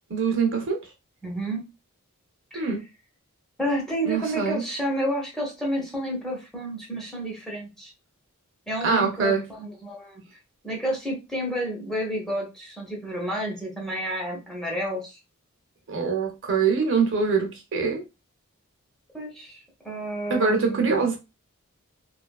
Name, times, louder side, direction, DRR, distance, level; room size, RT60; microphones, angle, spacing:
voice 1, 0.1-0.8 2.5-2.8 4.1-4.6 8.8-9.5 15.9-18.0 20.3-21.2, right 5 dB, 55° right, 0.6 m, -24 dB
voice 2, 1.2-1.6 2.5-2.7 3.6-7.9 8.7-10.2 10.6-15.2 19.1-19.6 19.8-21.0, right 1 dB, ahead, 0.8 m, -30 dB
2.7 x 2.4 x 2.3 m
head